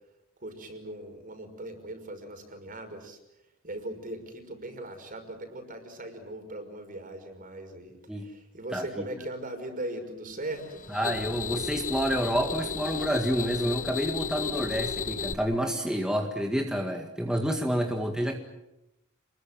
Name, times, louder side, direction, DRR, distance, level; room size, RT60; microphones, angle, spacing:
voice 1, 0.4-3.2 3.6-10.8, right 1 dB, 45° right, 6 dB, 5.7 m, -39 dB
sound 1, 10.5-15.3, left 5 dB, 40° left, 1.4 m, -34 dB
voice 2, 10.9-18.4, equal, 5° right, 2 dB, 1.9 m, -28 dB
29.5 x 22.0 x 7.7 m, 0.91 s
head